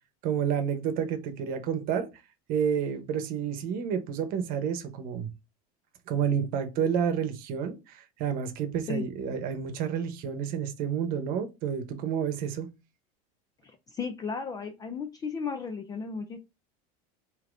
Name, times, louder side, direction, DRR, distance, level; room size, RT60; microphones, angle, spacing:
voice 1, 0.2-2.1 2.5-5.3 6.1-12.7, right 7 dB, 50° right, 0.9 m, -30 dB
voice 2, 13.9-16.4, left 5 dB, 20° left, 0.4 m, -34 dB
5.0 x 2.8 x 2.5 m
supercardioid pair, 145°, 19 cm